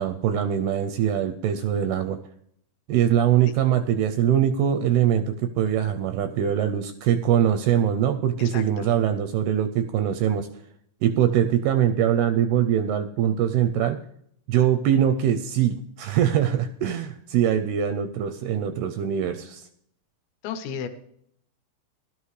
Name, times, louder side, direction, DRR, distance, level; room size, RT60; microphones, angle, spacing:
voice 1, 0.0-2.2 2.9-10.5 11.0-14.0 14.5-19.7, right 10 dB, 85° right, 8 dB, 2.3 m, -22 dB
voice 2, 8.4-8.9 20.4-20.9, left 7 dB, 80° left, 9 dB, 2.9 m, -33 dB
16.5 x 12.0 x 3.2 m, 0.71 s
omnidirectional pair, 5.0 m